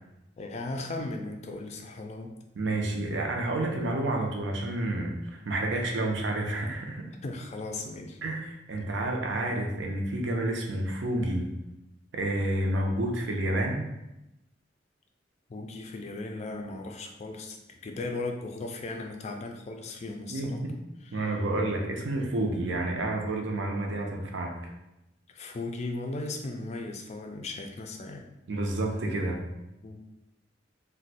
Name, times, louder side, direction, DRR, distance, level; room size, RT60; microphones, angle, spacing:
voice 1, 0.4-2.3 7.2-8.2 15.5-20.6 21.0-21.4 25.3-28.2 29.8-30.0, left 2 dB, 35° left, 3 dB, 0.4 m, -37 dB
voice 2, 2.5-7.0 8.2-11.5 12.1-13.8 20.3-20.7 21.1-24.7 28.5-29.4, right 1 dB, 70° right, 1 dB, 0.5 m, -29 dB
2.5 x 2.2 x 4.0 m, 0.92 s
head